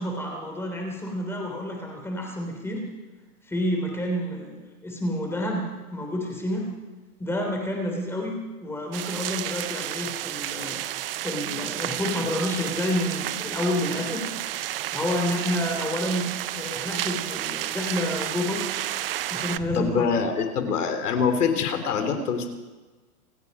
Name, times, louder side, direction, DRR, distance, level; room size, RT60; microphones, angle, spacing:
voice 1, 0.0-2.8 3.5-5.6 5.9-6.7 7.2-14.2 14.9-18.8 19.3-20.0, left 1 dB, 5° left, 1 dB, 3.1 m, -29 dB
sound 1, 8.9-19.6, right 13 dB, 40° right, 0.5 m, -31 dB
voice 2, 19.6-22.5, left 6 dB, 80° left, 7 dB, 3.1 m, -25 dB
26.5 x 9.3 x 5.4 m, 1.3 s
hypercardioid pair, 150°, 45 cm